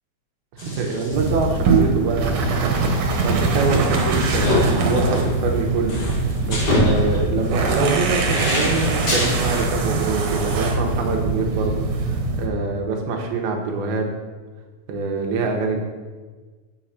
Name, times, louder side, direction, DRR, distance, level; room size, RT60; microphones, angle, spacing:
sound 1, 0.6-1.4 1.7-1.8 3.1-9.6, left 1 dB, 45° left, 1.8 m, -25 dB
voice 1, 0.6-14.1 14.9-15.8, right 4 dB, 90° right, 2 dB, 3.0 m, -25 dB
sound 2, 1.1-12.5, right 3 dB, 65° right, 2.4 m, -22 dB
7.8 x 6.4 x 5.7 m, 1.4 s
omnidirectional pair, 4.2 m